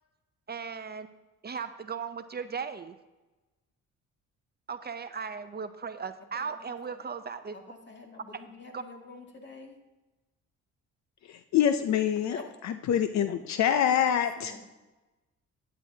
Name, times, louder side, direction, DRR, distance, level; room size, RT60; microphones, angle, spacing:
voice 1, 0.5-1.1 1.4-3.0 4.7-7.6 8.7-8.8, right 6 dB, 35° right, 0.6 m, -37 dB
voice 2, 6.3-7.0 7.5-9.7 12.3-12.4 14.4-14.6, left 3 dB, 35° left, 2.1 m, -47 dB
voice 3, 11.3-14.5, left 9 dB, 65° left, 0.6 m, -26 dB
12.5 x 9.6 x 2.8 m
cardioid pair, 90°, 30 cm